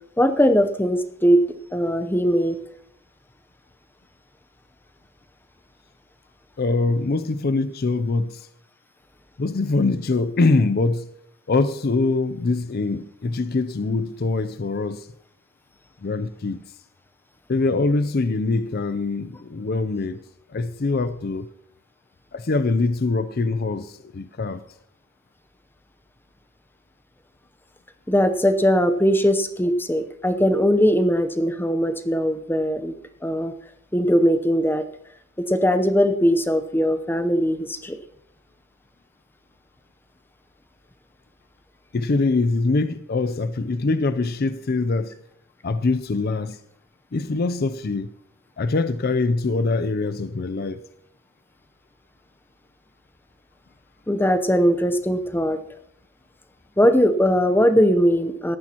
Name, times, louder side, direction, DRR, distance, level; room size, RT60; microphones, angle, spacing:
voice 1, 0.2-1.4 1.7-2.6 28.1-32.9 33.2-33.5 33.9-34.8 35.5-38.0 54.1-55.6 56.8-58.6, equal, 10° left, 0.7 m, -20 dB
voice 2, 6.6-8.5 9.4-11.1 11.5-15.1 16.0-16.6 17.5-20.2 20.5-21.5 22.3-24.6 41.9-45.1 45.6-46.6 47.1-48.1 48.6-50.8, left 3 dB, 45° left, 0.5 m, -23 dB
18.0 x 13.5 x 2.9 m
head